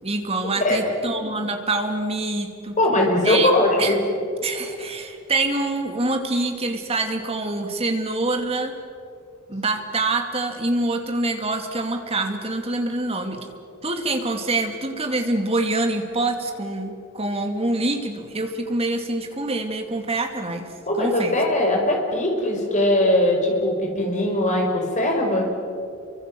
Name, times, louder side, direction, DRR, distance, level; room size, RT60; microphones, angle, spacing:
voice 1, 0.0-2.8 3.2-3.5 3.8-4.0 4.4-8.7 9.5-13.4 13.8-20.7 20.9-21.3, right 2 dB, 25° right, 5 dB, 2.6 m, -25 dB
voice 2, 2.8-4.0 20.9-25.5, left 1 dB, 35° left, 1 dB, 5.4 m, -20 dB
28.5 x 24.5 x 7.8 m, 2.4 s
head